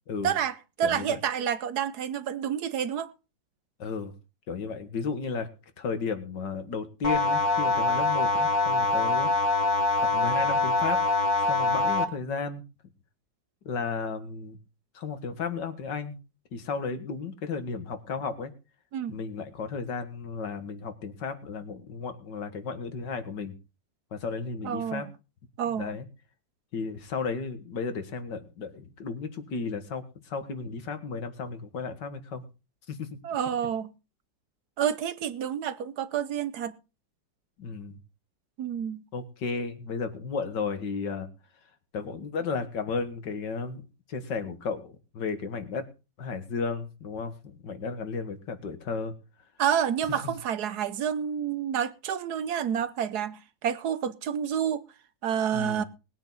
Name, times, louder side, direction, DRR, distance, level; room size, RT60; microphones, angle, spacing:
voice 1, 0.2-3.1 18.9-19.2 24.6-25.1 25.6-26.0 33.2-33.9 34.8-36.8 38.6-39.0 49.6-54.8 55.2-55.8, right 8 dB, 65° right, 1.3 m, -29 dB
voice 2, 0.8-1.2 3.8-4.1 4.5-5.5 5.8-9.3 10.0-11.0 11.5-12.6 13.7-14.6 14.9-16.2 16.5-18.5 19.1-23.5 24.1-25.1 25.7-26.1 26.7-32.4 32.9-33.2 37.6-38.0 39.1-41.3 41.9-43.8 44.1-45.9 46.2-49.1 50.2-50.3 55.5-55.9, left 5 dB, 70° left, 2.3 m, -34 dB
sound 1, 7.0-12.0, left 2 dB, 50° left, 1.6 m, -24 dB
20.0 x 9.0 x 4.1 m
omnidirectional pair, 2.0 m